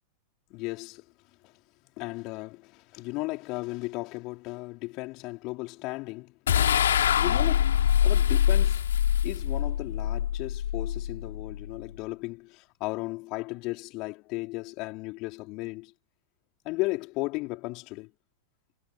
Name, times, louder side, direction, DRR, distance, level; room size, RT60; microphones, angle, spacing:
voice 1, 0.5-1.1 1.4-1.6 2.0-6.3 6.6-6.7 7.2-8.9 9.2-15.9 16.6-18.1, left 23 dB, 45° left, 3.9 m, -35 dB
sound 1, 6.5-11.8, left 10 dB, 70° left, 2.8 m, -24 dB
figure-of-eight pair, 95°, 0 cm